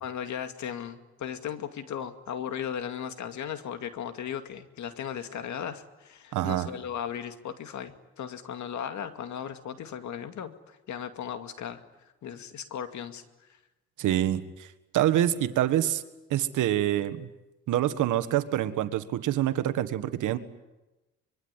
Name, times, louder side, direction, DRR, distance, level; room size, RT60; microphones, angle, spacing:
voice 1, 0.0-11.8 12.2-13.2, left 8 dB, 70° left, 8 dB, 2.3 m, -36 dB
voice 2, 6.3-6.7 14.0-14.7 14.9-16.0 16.3-17.3 17.7-20.4, right 12 dB, 80° right, 11 dB, 1.7 m, -26 dB
25.0 x 23.0 x 9.9 m, 1.1 s
cardioid pair, 90°, 30 cm